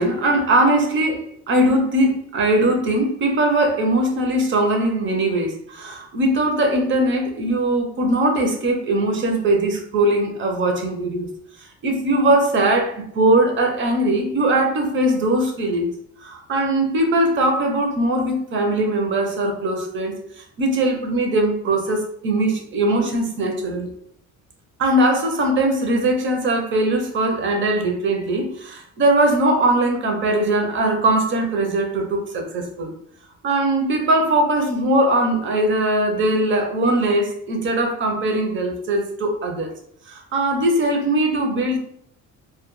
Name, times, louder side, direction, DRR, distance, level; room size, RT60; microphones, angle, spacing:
voice 1, 0.0-11.3 11.8-15.9 16.2-23.9 24.8-32.9 33.4-39.7 40.1-41.8, right 1 dB, 40° right, 2 dB, 0.5 m, -20 dB
2.2 x 2.1 x 3.0 m, 0.70 s
cardioid pair, 150°, 31 cm